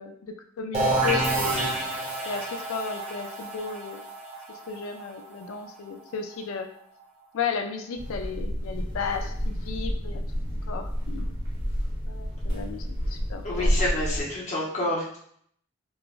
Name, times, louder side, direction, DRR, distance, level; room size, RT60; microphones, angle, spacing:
voice 1, 0.0-1.7 2.3-4.0 4.5-6.7 7.3-11.3 12.1-13.7 14.2-14.3, left 6 dB, 85° left, 6 dB, 0.3 m, -34 dB
sound 1, 0.7-6.3, right 2 dB, 30° right, 0.6 m, -29 dB
sound 2, 8.0-14.2, equal, 75° right, 1.3 m, -29 dB
voice 2, 13.4-15.2, left 1 dB, 35° left, -5 dB, 0.7 m, -28 dB
3.3 x 2.1 x 2.4 m, 0.65 s
head